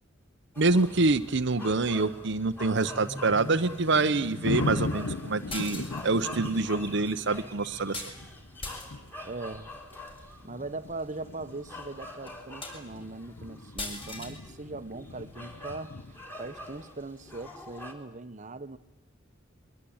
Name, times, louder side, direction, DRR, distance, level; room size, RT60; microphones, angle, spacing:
sound 1, 0.5-17.9, left 1 dB, 10° left, 3.6 m, -44 dB
voice 1, 0.6-8.0, right 3 dB, 65° right, 0.9 m, -26 dB
sound 2, 2.5-17.0, left 2 dB, 90° left, 1.0 m, -39 dB
sound 3, 5.5-6.3 7.9-8.2 8.6-9.1 9.9-10.2 11.0-11.1 11.5-11.6 12.3-12.4 12.6-13.1 13.8-14.4, left 2 dB, 30° left, 5.9 m, -39 dB
voice 2, 9.2-9.7 10.4-15.9 16.4-18.8, right 2 dB, 40° right, 1.2 m, -40 dB
23.5 x 23.0 x 8.8 m
head